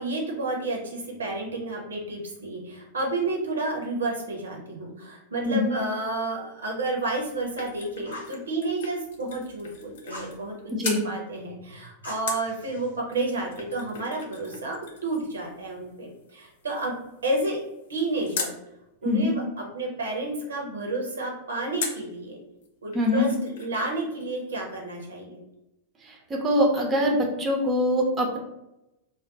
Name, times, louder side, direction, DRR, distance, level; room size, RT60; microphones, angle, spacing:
voice 1, 0.0-10.7 11.0-16.9 17.2-17.6 17.9-18.5 19.0-22.4 22.8-25.4, right 2 dB, 70° right, 0 dB, 0.7 m, -30 dB
sound 1, 6.9-10.5 10.8-11.1 12.3-18.6 21.8-22.1 22.6-22.7 22.9-23.9 24.2-24.3, left 5 dB, 60° left, 0.5 m, -39 dB
Fire, 8.0-8.4 10.1-10.4 12.0-13.0, left 1 dB, 80° left, 0.9 m, -42 dB
voice 2, 22.9-23.3 26.0-28.4, left 1 dB, 20° right, 1 dB, 0.6 m, -23 dB
2.4 x 2.2 x 4.0 m, 0.89 s
figure-of-eight pair, 90°, 0 cm